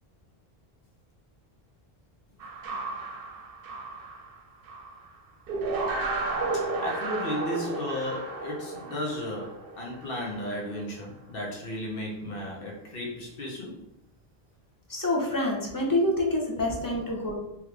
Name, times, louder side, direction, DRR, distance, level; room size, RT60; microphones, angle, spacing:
sound 1, 2.4-5.1 5.5-10.6, right 3 dB, 65° right, 0.7 m, -33 dB
voice 1, 6.8-13.7 16.6-16.8, left 1 dB, 65° left, -2 dB, 1.0 m, -34 dB
voice 2, 14.9-17.3, left 1 dB, 25° left, -1 dB, 0.5 m, -27 dB
3.2 x 2.4 x 3.2 m, 0.82 s
omnidirectional pair, 1.0 m